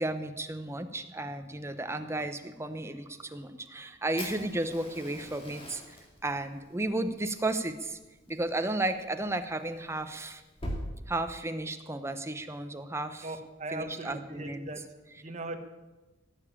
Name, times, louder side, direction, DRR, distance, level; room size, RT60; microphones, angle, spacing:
voice 1, 0.0-6.0 6.2-8.0 8.3-10.4 11.1-13.3 13.7-14.7, right 2 dB, 15° right, 8 dB, 0.9 m, -33 dB
Fire, 4.2-10.8, equal, 30° left, 2.7 m, -44 dB
voice 2, 13.2-14.8 15.2-15.6, right 2 dB, 35° right, 5 dB, 1.4 m, -39 dB
17.0 x 7.2 x 8.6 m, 1.1 s
head